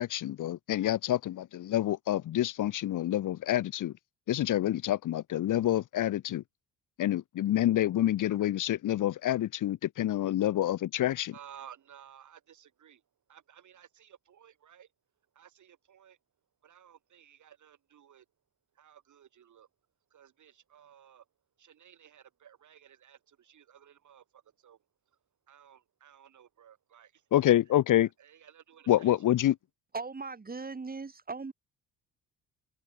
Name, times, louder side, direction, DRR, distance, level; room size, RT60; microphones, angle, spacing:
voice 1, 0.0-3.9 4.3-6.4 7.0-11.3 27.3-28.1 28.9-29.5, left 13 dB, 60° left, 1.3 m, -27 dB
voice 2, 11.3-13.0 13.3-14.9 15.3-16.2 16.6-18.3 18.7-19.7 20.1-21.3 21.6-25.2 25.5-27.3 27.7-27.8 28.0-29.1, right 9 dB, 60° right, 6.2 m, -56 dB
voice 3, 29.9-31.5, right 4 dB, 25° right, 4.0 m, -38 dB
open air
supercardioid pair, 70°, 34 cm